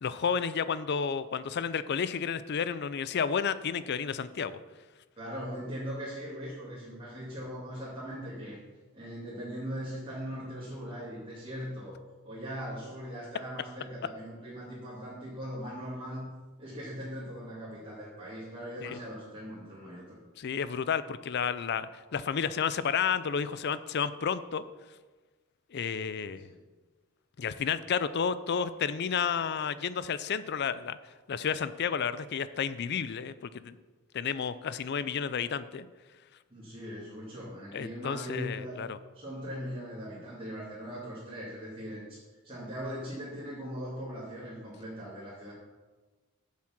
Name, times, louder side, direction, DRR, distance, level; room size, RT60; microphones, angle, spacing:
voice 1, 0.0-4.6 18.8-19.0 20.4-24.6 25.7-26.5 27.4-31.0 31.3-33.8 34.1-35.9 37.7-39.0, left 7 dB, 50° left, 15 dB, 0.4 m, -31 dB
voice 2, 5.2-8.6 8.9-12.0 12.2-16.3 16.6-20.2 26.5-26.6 36.5-38.8 39.1-45.5, equal, 25° right, -9 dB, 2.7 m, -40 dB
7.5 x 7.2 x 6.0 m, 1.3 s
head